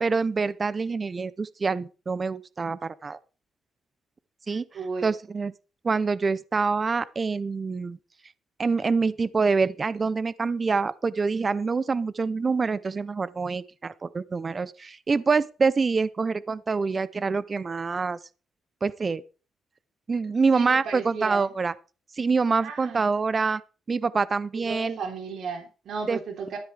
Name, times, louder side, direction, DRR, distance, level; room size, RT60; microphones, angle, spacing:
voice 1, 0.0-3.2 4.5-4.6 5.0-5.5 5.8-8.0 8.6-18.2 18.8-19.2 20.1-21.7 22.2-23.6 23.9-25.0 26.1-26.2, right 4 dB, 25° right, 0.5 m, -26 dB
voice 2, 4.7-5.1 20.5-21.5 22.6-23.0 24.5-26.6, right 5 dB, 60° right, 3.5 m, -34 dB
13.0 x 11.5 x 3.4 m
cardioid pair, 155°, 0 cm